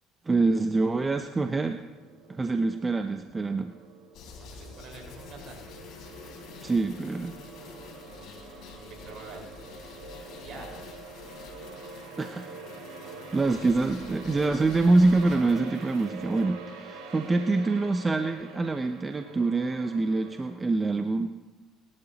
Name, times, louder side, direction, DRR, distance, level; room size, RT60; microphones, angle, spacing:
voice 1, 0.3-1.8 2.3-3.7 6.6-7.4 12.2-12.5 13.3-21.3, right 3 dB, 20° right, 7 dB, 0.7 m, -25 dB
sound 1, 0.8-20.6, right 4 dB, 80° right, 3.3 m, -46 dB
sound 2, 4.1-16.4, left 6 dB, 65° left, 3.6 m, -47 dB
voice 2, 4.4-5.8 8.1-9.5 10.4-11.0, right 3 dB, 55° right, 0 dB, 5.0 m, -47 dB
25.5 x 12.0 x 3.0 m, 1.1 s
supercardioid pair, 90°, 0 cm